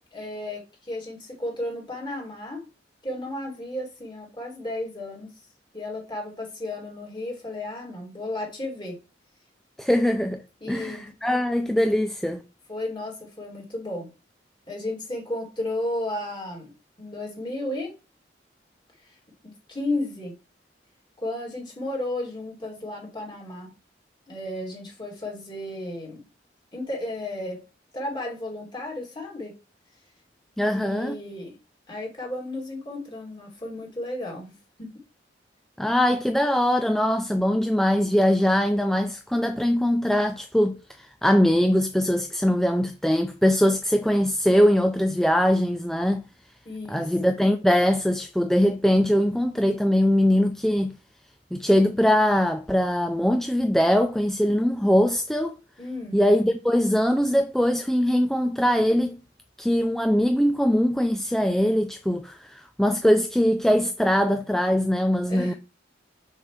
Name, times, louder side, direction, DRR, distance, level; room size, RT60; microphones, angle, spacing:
voice 1, 0.0-2.6 3.0-5.3 5.7-9.0 10.6-11.1 12.7-14.1 14.7-16.7 17.0-17.9 19.1-19.2 19.4-20.4 21.2-23.7 24.3-26.2 26.7-27.6 27.9-29.5 30.7-31.5 31.9-34.5 34.8-34.9 46.6-47.1 55.8-56.2 65.3-65.6, left 1 dB, 25° left, 2.7 m, -33 dB
voice 2, 9.8-10.4 10.7-12.4 30.6-31.2 35.8-46.3 46.9-50.9 51.5-55.6 56.1-59.2 59.6-65.5, equal, ahead, 0.3 m, -22 dB
6.4 x 6.0 x 3.2 m
head